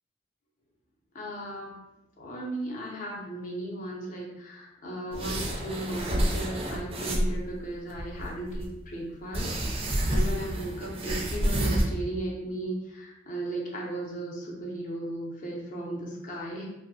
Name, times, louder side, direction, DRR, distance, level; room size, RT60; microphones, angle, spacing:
voice 1, 1.1-1.8 2.2-16.7, right 1 dB, 45° left, -2 dB, 0.6 m, -36 dB
sound 1, 5.1-7.4 7.9-8.7 9.3-11.8, right 1 dB, 30° right, 0.4 m, -28 dB
2.8 x 2.1 x 2.6 m, 0.91 s
head